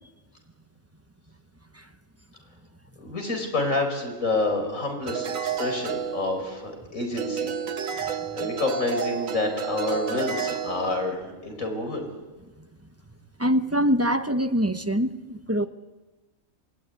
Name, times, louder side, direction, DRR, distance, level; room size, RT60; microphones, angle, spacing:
voice 1, 3.0-7.5 7.9-12.1, left 2 dB, 80° left, 4 dB, 5.4 m, -28 dB
sound 1, 5.1-6.8 7.2-11.1, right 6 dB, 80° right, 1.5 m, -31 dB
voice 2, 13.4-15.7, equal, 10° right, 9 dB, 1.0 m, -24 dB
27.5 x 22.0 x 9.4 m, 1.2 s
omnidirectional pair, 1.4 m